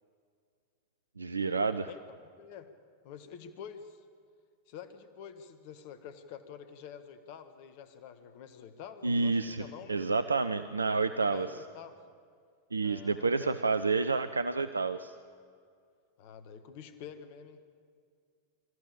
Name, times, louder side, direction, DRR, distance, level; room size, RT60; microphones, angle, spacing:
voice 1, 1.2-1.9 9.0-9.6 9.9-11.5 12.7-15.1, right 4 dB, 75° right, 12 dB, 0.6 m, -29 dB
voice 2, 1.8-2.7 3.0-4.0 4.7-10.0 11.3-12.0 12.8-13.6 16.2-17.6, left 8 dB, 45° left, 10 dB, 1.5 m, -47 dB
25.5 x 14.5 x 8.7 m, 2.1 s
figure-of-eight pair, 90°, 0 cm